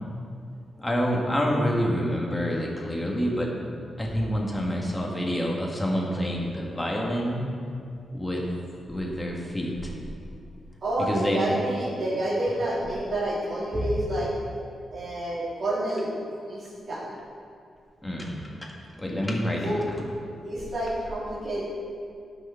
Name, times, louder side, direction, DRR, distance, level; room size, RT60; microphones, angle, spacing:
voice 1, 0.8-3.5 4.0-7.5 8.1-8.4 8.9-9.9 11.1-11.4 18.0-18.3 18.6-18.7 19.0-19.6, equal, 10° left, -2 dB, 1.6 m, -27 dB
voice 2, 10.8-14.3 14.9-17.0 19.5-19.9 20.4-21.6, right 1 dB, 45° right, -8 dB, 2.6 m, -29 dB
12.0 x 6.6 x 5.7 m, 2.3 s
wide cardioid pair, 150°, 0 cm